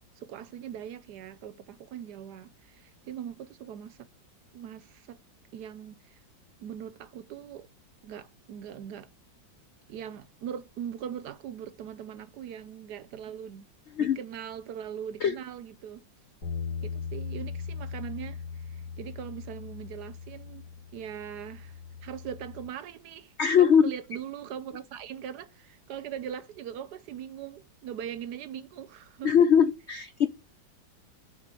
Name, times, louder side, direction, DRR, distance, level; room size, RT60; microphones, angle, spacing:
voice 1, 0.2-4.1 4.5-5.2 5.5-6.2 6.6-7.7 8.0-9.1 9.9-13.7 14.0-16.0 16.8-20.7 20.9-29.3, right 9 dB, 70° right, 1.1 m, -41 dB
sound 1, 16.4-22.7, left 5 dB, 50° left, 2.7 m, -39 dB
voice 2, 23.4-23.9 29.2-30.3, left 7 dB, 90° left, 0.6 m, -21 dB
12.5 x 4.3 x 7.6 m
omnidirectional pair, 2.0 m